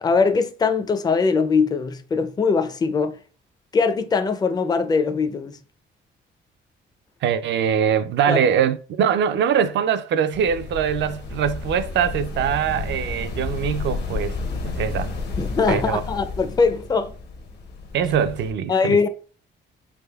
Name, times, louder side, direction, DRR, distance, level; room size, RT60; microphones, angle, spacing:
voice 1, 0.0-3.2 3.7-5.5 8.3-8.4 15.4-17.1 18.7-19.1, left 5 dB, 20° left, 0.4 m, -21 dB
voice 2, 7.2-14.4 14.6-15.1 15.7-16.0 17.9-19.0, right 8 dB, 65° right, 0.4 m, -22 dB
sound 1, 10.3-18.5, left 4 dB, 60° left, 0.8 m, -31 dB
3.4 x 3.2 x 2.2 m
cardioid pair, 90°, 20 cm